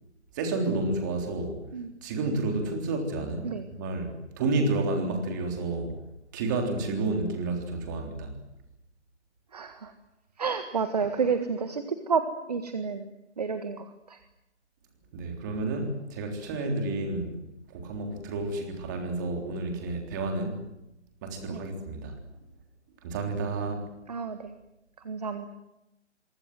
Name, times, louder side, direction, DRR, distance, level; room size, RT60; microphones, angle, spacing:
voice 1, 0.4-1.6 2.0-5.9 6.3-8.4 15.1-17.3 17.7-20.6 21.2-22.1 23.0-23.8, right 2 dB, 15° right, 4 dB, 3.6 m, -30 dB
voice 2, 9.5-9.9 10.4-14.2 21.5-21.6 24.1-24.5 25.0-25.5, right 5 dB, 35° right, 8 dB, 1.7 m, -30 dB
27.0 x 24.5 x 7.8 m, 0.89 s
figure-of-eight pair, 165°, 35 cm